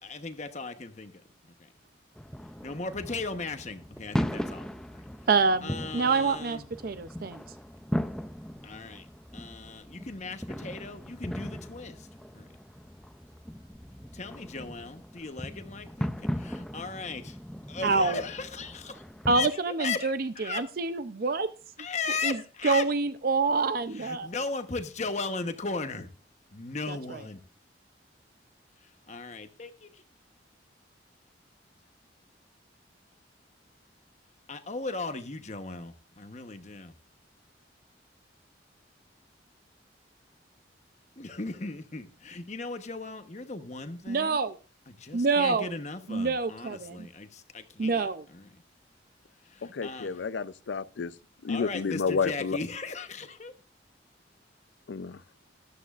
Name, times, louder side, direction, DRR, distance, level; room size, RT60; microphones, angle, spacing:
voice 1, 0.0-1.1 1.6-1.7 2.6-5.0 5.6-6.7 8.6-9.1 9.3-12.1 12.3-12.5 14.1-17.4 17.7-20.7 21.8-22.9 23.8-26.1 26.5-27.4 29.1-30.0 34.5-36.9 41.2-44.4 44.9-48.6 49.5-50.2 51.5-53.5, left 4 dB, 40° left, 1.0 m, -37 dB
sound 1, 2.2-19.5, equal, 5° left, 0.4 m, -38 dB
voice 2, 5.3-7.4 17.8-18.2 19.3-21.5 22.2-22.4 22.6-24.3 26.9-27.2 44.1-44.6 45.1-45.7 46.1-47.1 47.8-48.2, right 4 dB, 50° right, 0.5 m, -27 dB
voice 3, 49.6-51.1 51.4-52.6 54.9-55.2, left 5 dB, 75° left, 0.5 m, -30 dB
13.5 x 11.5 x 2.4 m
head